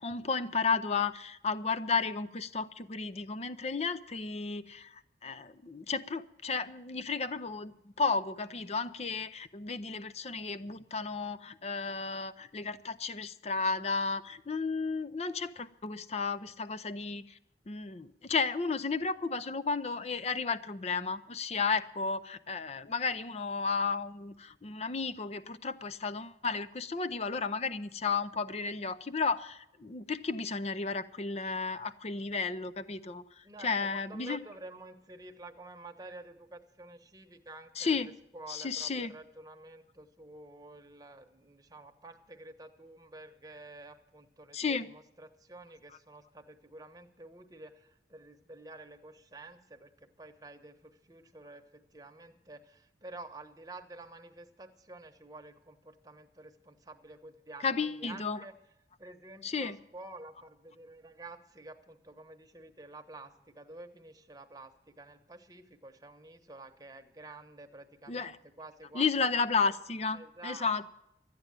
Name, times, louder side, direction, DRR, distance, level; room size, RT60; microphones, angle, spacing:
voice 1, 0.0-4.9 5.2-17.2 17.7-33.2 33.6-34.4 37.8-38.1 38.5-39.1 44.5-44.9 57.6-58.4 59.4-59.8 68.1-68.4 68.9-70.9, left 4 dB, 35° left, 14 dB, 0.6 m, -33 dB
voice 2, 33.4-58.5 59.0-69.7 70.1-70.7, right 2 dB, 20° right, 5 dB, 1.1 m, -50 dB
13.0 x 9.5 x 8.9 m, 0.82 s
head